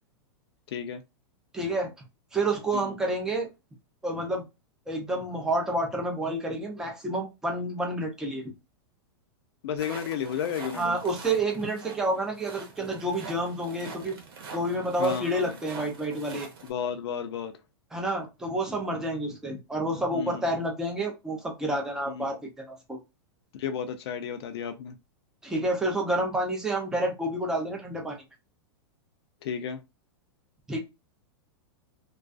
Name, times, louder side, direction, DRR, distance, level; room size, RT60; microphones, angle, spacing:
voice 1, 0.7-1.0 2.7-2.9 9.6-11.0 15.0-15.4 16.6-17.5 20.1-20.4 22.1-22.3 23.6-25.0 29.4-29.8, left 7 dB, 70° left, 0.4 m, -32 dB
voice 2, 1.5-1.9 2.3-3.5 4.0-4.5 4.9-8.4 10.7-14.2 14.5-16.5 17.9-23.0 25.4-28.2 30.7-30.8, right 1 dB, 5° right, 0.4 m, -29 dB
sound 1, 9.8-16.7, right 4 dB, 60° right, 0.9 m, -44 dB
2.3 x 2.3 x 2.4 m
supercardioid pair, 165°, 14 cm